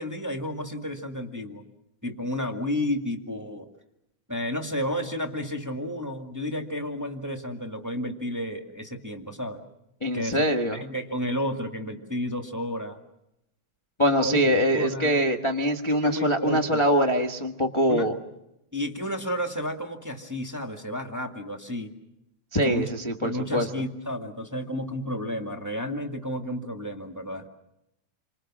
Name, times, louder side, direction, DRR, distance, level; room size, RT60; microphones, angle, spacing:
voice 1, 0.0-1.6 2.0-3.7 4.3-9.6 10.1-10.4 10.7-13.0 14.2-14.4 14.7-15.2 15.9-16.8 17.9-18.1 18.7-21.9 22.6-22.9 23.2-27.5, left 1 dB, 10° right, 4 dB, 1.4 m, -32 dB
voice 2, 10.0-10.8 14.0-18.1 22.5-23.7, equal, 15° left, 2 dB, 0.9 m, -23 dB
29.0 x 25.5 x 6.2 m, 0.87 s
omnidirectional pair, 3.4 m